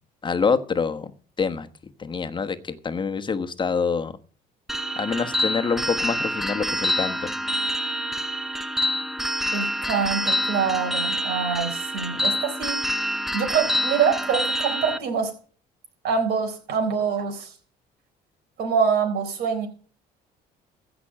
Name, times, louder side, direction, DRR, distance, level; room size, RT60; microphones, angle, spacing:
voice 1, 0.2-1.1 1.4-1.7 2.0-4.1 5.0-7.3, left 5 dB, 30° left, 8 dB, 1.2 m, -26 dB
sound 1, 4.7-15.0, equal, ahead, 0.8 m, -27 dB
voice 2, 9.5-12.8 13.3-15.3 16.0-17.5 18.6-19.7, right 6 dB, 75° right, 3 dB, 4.2 m, -25 dB
15.5 x 6.1 x 7.5 m, 0.42 s
cardioid pair, 110°, 17 cm